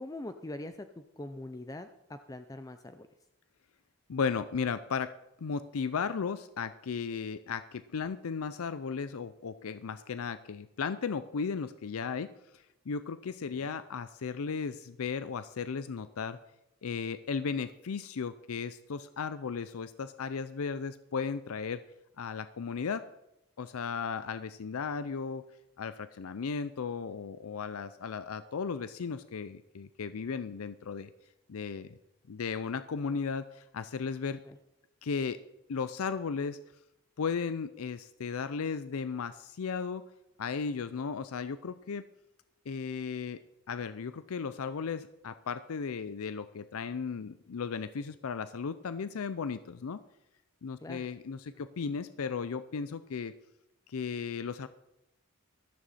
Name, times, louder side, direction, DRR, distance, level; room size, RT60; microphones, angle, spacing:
voice 1, 0.0-3.1 13.5-13.8 34.4-34.6 50.8-51.1, left 1 dB, 15° left, 9 dB, 0.4 m, -43 dB
voice 2, 4.1-5.1 5.4-16.4 16.8-21.8 22.2-23.1 23.6-25.4 25.8-31.1 31.5-32.0 32.3-34.4 35.0-35.4 35.7-36.6 37.2-40.1 40.4-42.1 42.7-43.4 43.7-50.0 50.6-53.3 53.9-54.7, left 5 dB, 80° left, 13 dB, 0.5 m, -35 dB
14.0 x 13.0 x 4.2 m, 0.90 s
head